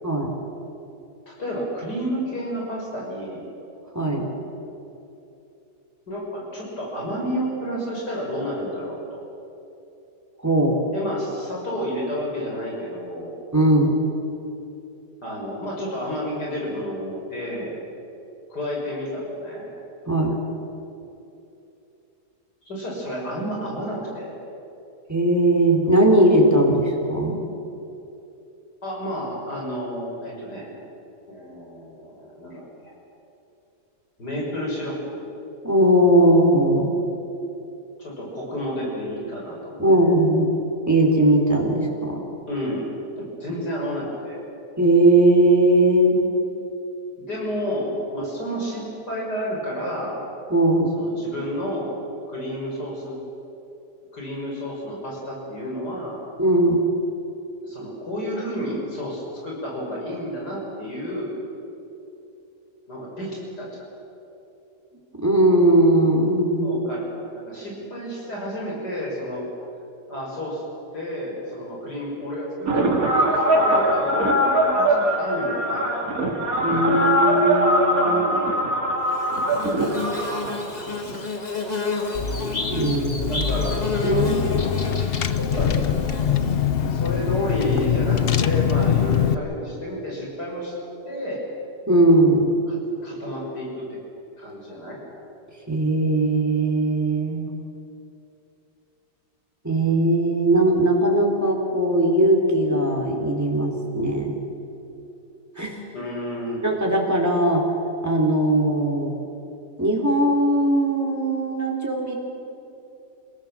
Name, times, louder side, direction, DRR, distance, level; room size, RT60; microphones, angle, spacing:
voice 1, 1.3-3.4 6.1-9.2 10.9-13.3 15.2-17.7 18.5-19.7 22.7-24.3 28.8-30.7 31.3-32.9 34.2-35.0 38.0-40.1 42.5-42.9 43.2-44.5 47.2-50.2 50.9-51.9 52.3-53.2 54.1-56.2 57.6-61.3 62.9-63.8 66.6-69.5 70.1-70.6 70.9-76.3 78.0-78.6 82.0-82.2 83.2-83.8 85.4-85.8 86.9-90.7 91.0-91.4 92.7-92.8 93.0-94.0 94.4-95.0 105.9-106.6, equal, 80° left, -3 dB, 6.7 m, -31 dB
voice 2, 3.9-4.3 10.4-10.8 13.5-14.0 20.1-20.4 25.1-27.4 35.6-37.0 39.8-40.5 40.9-42.2 44.8-46.2 50.5-50.9 56.4-56.8 65.2-66.8 76.6-78.2 82.7-83.4 84.0-84.6 91.9-92.5 95.7-97.5 99.6-104.3 105.6-105.8 106.6-107.6 108.0-109.1 109.8-112.2, right 1 dB, 10° right, -1 dB, 3.9 m, -19 dB
sound 1, 72.7-81.2, equal, 60° right, 2.8 m, -21 dB
Bird / Buzz, 79.1-86.8, left 3 dB, 25° left, 1.8 m, -31 dB
Car / Engine, 82.1-89.3, left 8 dB, 50° left, 0.7 m, -23 dB
28.5 x 17.0 x 7.6 m, 2.9 s
omnidirectional pair, 1.7 m